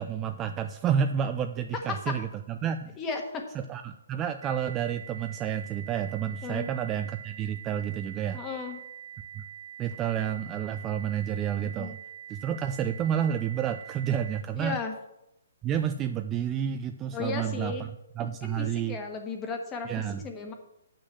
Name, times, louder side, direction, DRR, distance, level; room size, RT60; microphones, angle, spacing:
voice 1, 0.0-3.0 3.5-8.4 9.4-9.5 9.8-12.0 12.3-14.8 15.6-17.7 18.2-19.0 19.9-20.2, right 9 dB, 15° right, 8 dB, 0.3 m, -30 dB
voice 2, 1.7-2.1 3.0-3.5 6.4-6.7 8.3-8.8 11.6-11.9 14.6-14.9 17.1-17.9 18.2-18.3 18.6-20.5, left 4 dB, 15° left, 4 dB, 1.3 m, -35 dB
sound 1, 4.4-14.4, right 10 dB, 75° right, 0.5 m, -45 dB
8.2 x 6.3 x 7.7 m, 0.85 s
hypercardioid pair, 165°, 0 cm